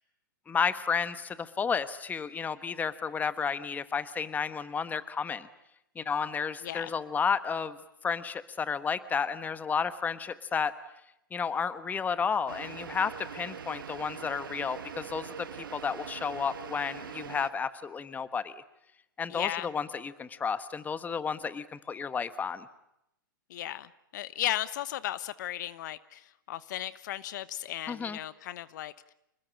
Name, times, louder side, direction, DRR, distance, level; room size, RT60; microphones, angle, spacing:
voice 1, 0.5-5.5 5.9-7.8 8.0-10.7 11.3-18.6 19.2-22.7 27.9-28.2, left 6 dB, 15° left, 14 dB, 1.2 m, -32 dB
voice 2, 6.6-6.9 19.3-19.7 23.5-29.1, left 13 dB, 55° left, 17 dB, 1.0 m, -36 dB
sound 1, 12.5-17.5, right 8 dB, 75° right, 1.9 m, -42 dB
27.5 x 20.0 x 8.9 m, 0.82 s
hypercardioid pair, 120°, 11 cm